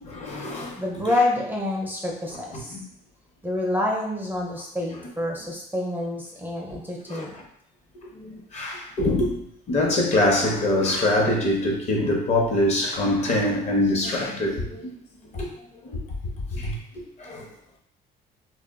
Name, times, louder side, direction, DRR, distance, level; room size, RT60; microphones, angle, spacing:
voice 1, 0.0-0.8 2.7-2.8 7.1-7.2 8.1-9.4 9.7-14.9 15.3-15.5 15.8-16.0 16.5-17.5, left 1 dB, 40° left, 0 dB, 0.7 m, -24 dB
voice 2, 0.8-2.8 3.4-7.4, left 1 dB, 10° right, -2 dB, 0.4 m, -27 dB
2.2 x 2.0 x 3.4 m, 0.68 s
cardioid pair, 110°, 17 cm